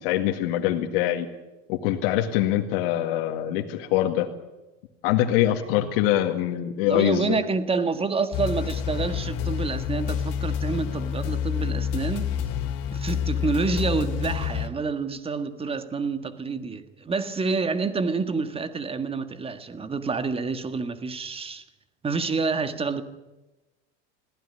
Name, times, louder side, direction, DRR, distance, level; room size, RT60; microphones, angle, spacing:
voice 1, 0.0-1.3 1.7-4.3 5.0-7.4, left 13 dB, 75° left, 2.0 m, -24 dB
voice 2, 6.8-12.3 12.9-21.6 22.0-23.0, right 4 dB, 20° right, 1.8 m, -28 dB
sound 1, 8.3-14.7, left 8 dB, 55° left, 2.9 m, -28 dB
21.0 x 16.0 x 9.8 m
supercardioid pair, 115°, 29 cm